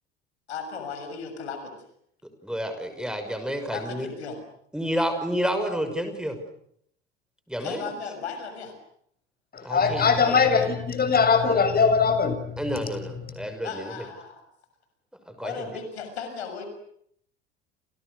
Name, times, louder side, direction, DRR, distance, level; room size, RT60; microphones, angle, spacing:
voice 1, 0.5-1.7 3.7-4.4 7.6-8.7 10.3-10.4 13.6-14.4 15.4-16.6, left 5 dB, 70° left, 7 dB, 6.5 m, -36 dB
voice 2, 2.4-4.1 4.7-6.4 7.5-7.9 9.6-10.0 12.6-13.9 15.3-15.7, equal, ahead, 7 dB, 6.2 m, -30 dB
voice 3, 9.5-12.6 13.4-13.5, left 5 dB, 25° left, 8 dB, 6.9 m, -21 dB
30.0 x 29.0 x 6.6 m, 0.70 s
figure-of-eight pair, 70°, 33 cm